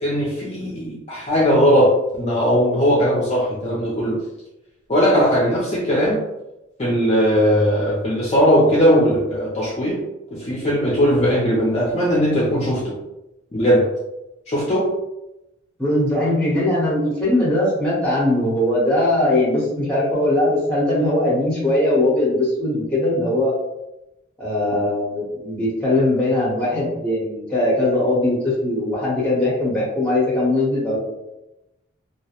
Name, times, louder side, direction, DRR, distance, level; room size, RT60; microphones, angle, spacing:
voice 1, 0.0-4.2 4.9-6.2 6.8-10.0 10.3-12.9 13.5-13.9 14.5-14.9, equal, 35° left, -6 dB, 0.5 m, -18 dB
voice 2, 15.8-23.5 24.4-31.0, left 1 dB, 5° left, -7 dB, 0.8 m, -20 dB
2.4 x 2.0 x 2.9 m, 0.93 s
head